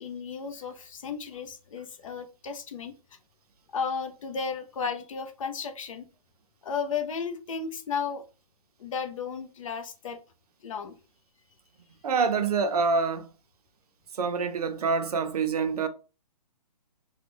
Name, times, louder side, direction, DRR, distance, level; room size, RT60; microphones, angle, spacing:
voice 1, 0.0-2.9 3.7-6.0 6.6-8.2 8.8-10.2 10.6-10.9, left 5 dB, 50° left, 0.6 m, -34 dB
voice 2, 12.0-13.3 14.1-15.9, right 5 dB, 65° right, 0.6 m, -26 dB
3.1 x 2.2 x 3.4 m
hypercardioid pair, 160°, 21 cm